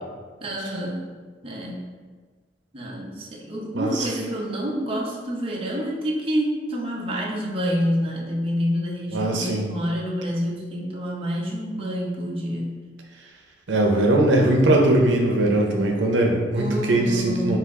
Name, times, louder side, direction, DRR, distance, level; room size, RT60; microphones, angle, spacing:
voice 1, 0.4-1.0 1.4-1.8 2.7-12.8 16.5-17.6, equal, 30° right, -3 dB, 0.7 m, -27 dB
voice 2, 3.7-4.1 9.1-9.7 13.7-17.6, right 1 dB, 80° right, 1 dB, 0.6 m, -20 dB
5.6 x 2.4 x 3.6 m, 1.4 s
head